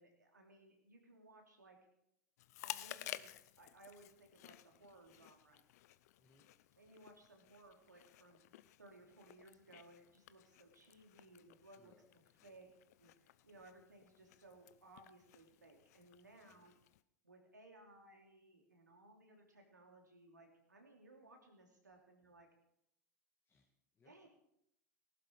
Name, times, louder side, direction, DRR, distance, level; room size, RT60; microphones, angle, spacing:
voice 1, 0.0-1.8 2.6-5.6 6.8-8.4 8.8-11.9 12.4-12.7 13.0-16.8 17.2-22.5 24.0-24.3, right 2 dB, 90° right, 1 dB, 3.2 m, -62 dB
Chewing mastication, 2.4-17.0, left 14 dB, 65° left, 0.7 m, -54 dB
voice 2, 6.2-6.5 11.7-12.7 16.4-16.7 21.9-22.0 23.4-24.2, left 3 dB, 25° left, 1 dB, 2.0 m, -73 dB
19.0 x 11.5 x 4.7 m, 0.76 s
figure-of-eight pair, 85°, 9 cm